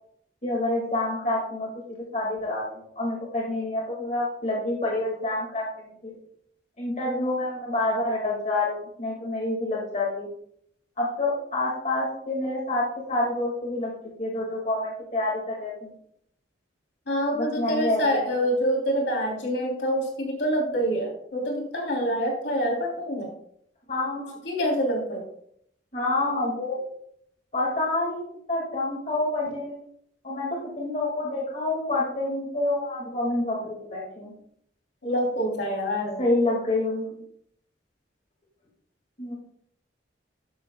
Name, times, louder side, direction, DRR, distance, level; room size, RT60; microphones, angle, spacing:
voice 1, 0.4-5.7 6.0-6.1 6.8-10.3 11.0-13.9 14.2-15.9 17.3-18.4 23.9-24.3 25.9-26.8 27.5-29.8 30.2-34.3 36.2-37.0 39.2-39.3, left 2 dB, 40° left, -4 dB, 2.0 m, -28 dB
voice 2, 17.1-23.3 24.4-25.3 35.0-36.2, equal, 70° left, -1 dB, 3.3 m, -26 dB
12.0 x 10.0 x 2.3 m, 0.70 s
head